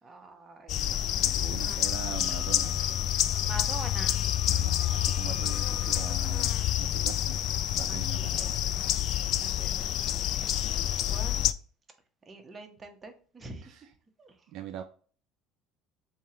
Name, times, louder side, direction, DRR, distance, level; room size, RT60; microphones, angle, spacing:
voice 1, 0.0-1.5 3.4-5.3 7.8-8.5 9.4-10.2 10.6-11.5 12.3-13.8 14.2-14.3, right 3 dB, 25° right, 5 dB, 1.0 m, -46 dB
sound 1, 0.7-11.5, left 12 dB, 55° left, 0.3 m, -28 dB
voice 2, 0.8-3.0 4.5-7.4 7.7-8.6 13.6-13.9 14.5-14.8, right 10 dB, 65° right, 7 dB, 0.4 m, -42 dB
Wind instrument woodwind instrument, 1.8-6.2, left 7 dB, 40° left, 0.8 m, -50 dB
3.5 x 2.9 x 4.3 m, 0.41 s
supercardioid pair, 105°, 0 cm